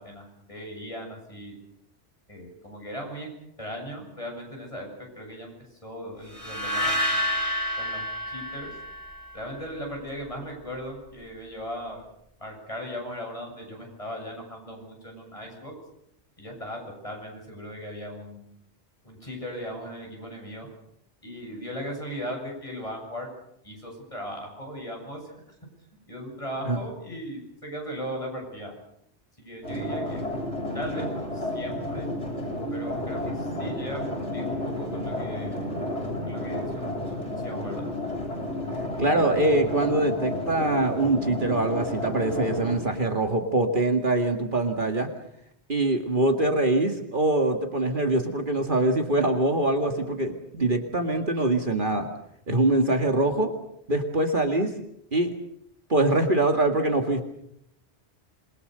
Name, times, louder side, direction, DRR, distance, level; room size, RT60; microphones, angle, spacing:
voice 1, 0.0-1.6 2.3-3.3 3.6-7.2 7.8-8.7 9.3-12.1 12.4-15.7 16.4-18.5 19.0-20.7 21.2-23.3 23.6-25.5 26.1-28.7 29.4-30.2 30.7-32.1 32.7-35.7 36.2-37.9, equal, 30° left, 0 dB, 8.2 m, -38 dB
sound 1, 6.3-9.5, equal, 30° right, 3.9 m, -29 dB
sound 2, 29.6-42.7, left 1 dB, 75° left, 8.1 m, -31 dB
voice 2, 39.0-45.1 45.7-52.1 52.5-53.5 53.9-54.7 55.1-55.3 55.9-57.2, right 2 dB, 45° right, 5 dB, 2.2 m, -23 dB
27.5 x 22.5 x 6.7 m, 0.72 s
omnidirectional pair, 1.2 m